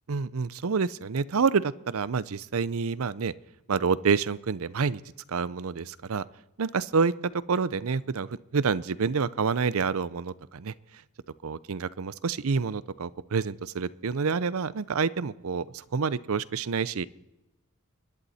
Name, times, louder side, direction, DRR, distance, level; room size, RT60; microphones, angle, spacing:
voice 1, 0.1-3.3 3.7-5.0 5.3-6.2 6.6-10.7 11.4-17.0, right 5 dB, 70° right, 19 dB, 0.6 m, -28 dB
28.5 x 11.0 x 4.3 m, 0.95 s
head